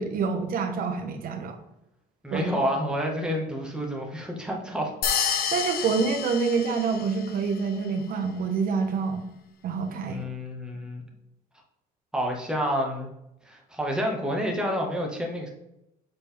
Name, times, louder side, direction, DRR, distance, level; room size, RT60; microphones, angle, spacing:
voice 1, 0.0-1.6 2.3-2.5 5.5-9.2 9.6-10.2, right 5 dB, 55° right, 5 dB, 1.1 m, -27 dB
voice 2, 2.2-4.9 9.9-11.0 12.1-13.1 13.4-15.5, equal, 5° right, 0 dB, 1.5 m, -29 dB
sound 1, 5.0-7.3, left 7 dB, 65° left, 0.9 m, -29 dB
7.0 x 4.1 x 3.5 m, 0.86 s
cardioid pair, 110°, 17 cm